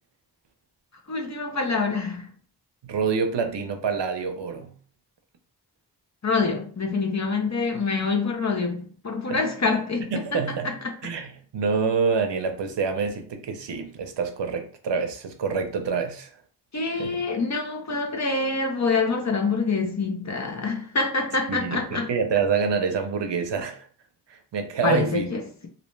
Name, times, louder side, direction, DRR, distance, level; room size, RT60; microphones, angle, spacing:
voice 1, 1.1-2.3 6.2-10.4 10.6-10.9 16.7-22.1 24.8-25.7, left 4 dB, 40° left, 0.6 m, -26 dB
voice 2, 2.8-4.7 9.3-9.4 10.1-10.8 11.0-16.3 17.0-17.2 21.5-23.9 24.3-25.3, right 5 dB, 80° right, 0.6 m, -27 dB
2.6 x 2.1 x 3.1 m
wide cardioid pair, 50°, 41 cm